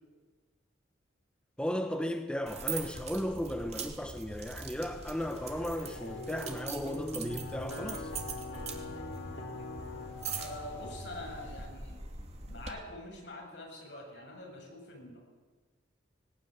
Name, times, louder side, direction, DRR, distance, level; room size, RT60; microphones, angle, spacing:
voice 1, 1.6-8.1, equal, 5° left, 1.1 m, -35 dB
sound 1, 2.5-12.7, right 4 dB, 35° right, 2.5 m, -42 dB
sound 2, 4.8-11.7, left 2 dB, 80° left, 3.7 m, -43 dB
voice 2, 10.3-12.0 12.5-15.2, left 1 dB, 65° left, 7.9 m, -45 dB
19.5 x 19.0 x 9.6 m
head